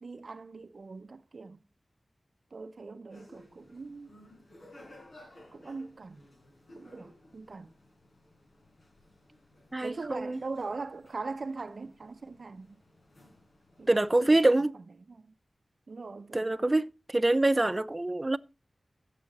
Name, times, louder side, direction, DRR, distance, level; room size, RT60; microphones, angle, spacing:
voice 1, 0.0-1.6 2.5-4.1 5.5-6.2 6.7-7.7 9.8-12.8 13.8-14.5 15.1-15.3 15.9-16.8, right 3 dB, 70° right, 0.6 m, -41 dB
sound 1, 3.1-14.1, left 1 dB, 75° left, 4.8 m, -57 dB
voice 2, 9.7-10.4 13.9-14.7 16.3-18.4, right 2 dB, 30° right, 0.7 m, -25 dB
14.5 x 7.6 x 4.0 m
cardioid pair, 50°, 0 cm